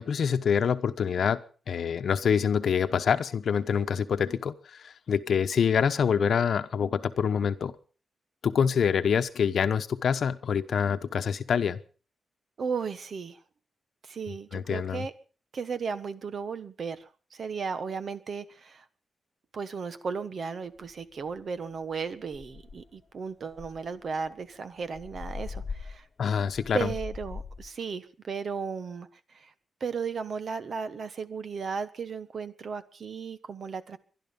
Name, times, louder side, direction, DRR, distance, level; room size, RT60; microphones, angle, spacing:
voice 1, 0.0-1.4 1.7-7.7 8.4-11.8 14.5-15.1 26.2-26.9, left 7 dB, 65° left, 10 dB, 1.0 m, -26 dB
voice 2, 12.6-13.4 14.0-15.1 15.5-18.8 19.5-26.1 26.7-29.5 29.8-34.0, right 5 dB, 50° right, 12 dB, 1.3 m, -35 dB
sound 1, 20.8-20.9 21.3-21.6 21.9-22.0 22.3-23.0 23.5-27.7, left 4 dB, 35° left, 0.8 m, -41 dB
23.0 x 11.5 x 5.4 m, 0.39 s
wide cardioid pair, 155°, 0 cm